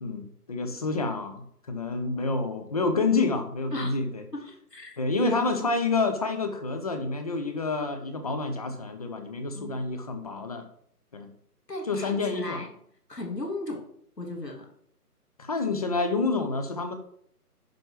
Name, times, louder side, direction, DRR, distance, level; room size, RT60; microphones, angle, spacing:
voice 1, 0.0-4.2 5.0-10.6 11.1-11.3 11.9-12.6 15.4-16.9, left 3 dB, 25° left, 7 dB, 1.0 m, -28 dB
voice 2, 4.3-5.5 9.5-9.8 11.7-12.7 13.1-13.9 14.2-14.7, left 2 dB, 85° left, 1 dB, 3.2 m, -36 dB
10.5 x 4.5 x 7.5 m, 0.65 s
figure-of-eight pair, 150°, 47 cm